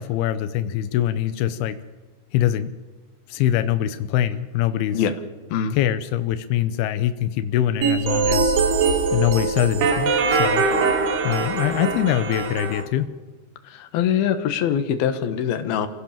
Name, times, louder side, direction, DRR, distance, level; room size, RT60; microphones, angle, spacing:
voice 1, 0.0-1.8 2.3-2.7 3.3-5.0 5.7-8.6 9.1-10.7 11.2-13.1, left 11 dB, 85° left, 11 dB, 2.3 m, -23 dB
sound 1, 7.8-12.8, right 4 dB, 60° right, 4.0 m, -22 dB
voice 2, 13.6-15.9, left 8 dB, 65° left, 9 dB, 2.7 m, -23 dB
28.0 x 16.5 x 7.4 m, 1.3 s
omnidirectional pair, 5.7 m